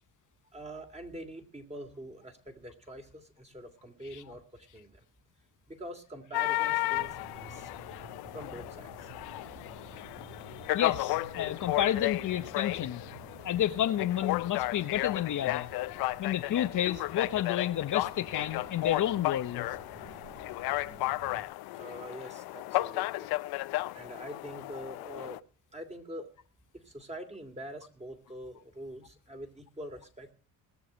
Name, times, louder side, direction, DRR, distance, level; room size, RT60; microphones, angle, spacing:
voice 1, 0.5-5.1 5.7-7.7 8.3-9.1 21.7-23.3 23.9-25.4 25.7-26.3 26.7-30.3, equal, 20° right, 2.9 m, -45 dB
sound 1, 6.3-25.4, left 18 dB, 80° left, 0.6 m, -34 dB
sound 2, 6.9-21.4, right 3 dB, 80° right, 5.9 m, -51 dB
voice 2, 10.7-13.0 13.4-15.7 16.2-19.7, left 11 dB, 55° left, 0.9 m, -30 dB
19.5 x 7.0 x 8.0 m
supercardioid pair, 75°, 37 cm